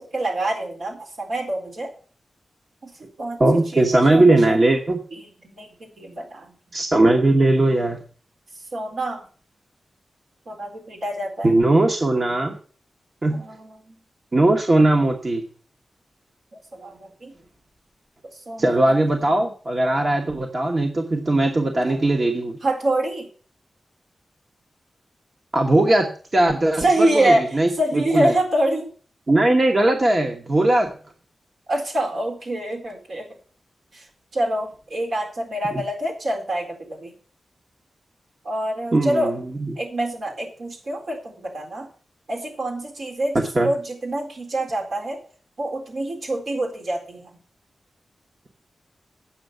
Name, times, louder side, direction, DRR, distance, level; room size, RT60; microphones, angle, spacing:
voice 1, 0.0-1.9 2.8-2.9 3.2-4.6 5.1-6.5 8.7-9.2 10.5-11.5 13.3-14.0 16.7-17.3 18.5-18.8 21.8-22.0 22.6-23.3 26.8-28.9 31.7-33.3 33.9-34.0 34.3-37.1 38.4-39.3 39.8-41.9 42.3-43.4 43.6-45.2 45.6-47.3, right 1 dB, 70° right, 0 dB, 4.1 m, -26 dB
voice 2, 3.4-5.0 6.7-8.0 11.4-12.5 13.2-13.4 14.3-15.4 18.6-22.6 25.5-28.3 29.3-30.9 35.7-35.8 38.9-39.8 43.5-43.7, right 2 dB, 30° right, 3 dB, 1.1 m, -19 dB
8.7 x 6.4 x 7.9 m, 0.41 s
wide cardioid pair, 160°, 0 cm